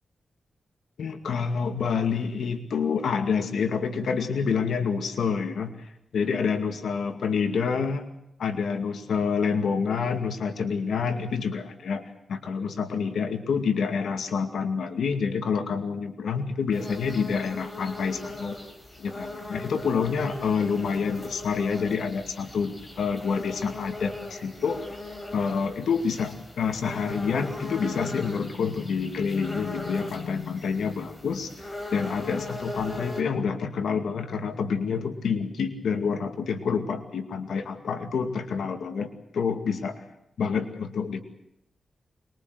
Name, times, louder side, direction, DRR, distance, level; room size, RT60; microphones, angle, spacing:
voice 1, 1.0-8.1 8.4-12.0 12.3-18.6 19.0-24.8 25.3-31.5 31.9-40.0 40.4-41.2, left 6 dB, 85° left, 7 dB, 2.3 m, -28 dB
sound 1, 16.7-33.2, left 2 dB, 20° left, 4.5 m, -39 dB
25.5 x 22.0 x 8.0 m, 0.78 s
wide cardioid pair, 160°, 0 cm